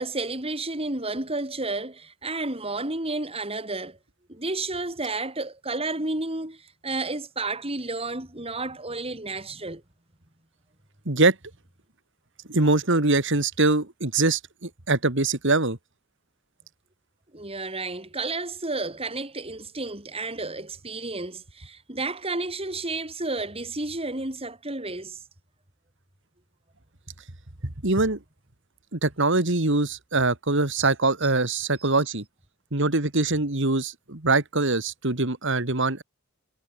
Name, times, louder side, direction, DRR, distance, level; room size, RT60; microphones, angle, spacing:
voice 1, 0.0-4.0 4.3-9.8 17.3-25.2 31.5-31.6, right 2 dB, 25° right, 4.3 m, -31 dB
voice 2, 11.1-11.4 12.5-15.8 27.6-28.2 28.9-32.2 32.7-36.0, right 2 dB, 60° right, 2.4 m, -23 dB
head